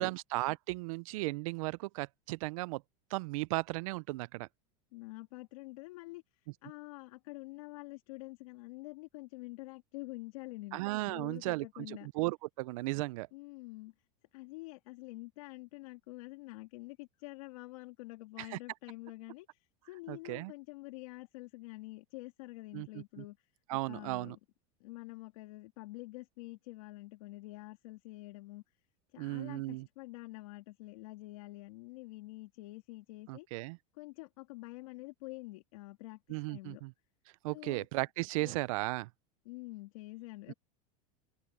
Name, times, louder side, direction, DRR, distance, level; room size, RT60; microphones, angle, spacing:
voice 1, 0.0-2.8 3.1-4.5 10.7-13.3 18.4-18.6 20.1-20.5 22.7-23.2 23.7-24.4 29.2-29.9 33.3-33.8 36.3-36.9 37.4-39.1 40.5-40.6, right 22 dB, 70° right, 0.5 m, -36 dB
voice 2, 4.9-12.1 13.3-13.9 14.3-24.4 24.8-28.6 29.1-33.5 33.9-36.8 37.5-37.9 38.4-38.5 39.4-40.5, left 21 dB, 70° left, 3.0 m, -47 dB
supercardioid pair, 145°, 18 cm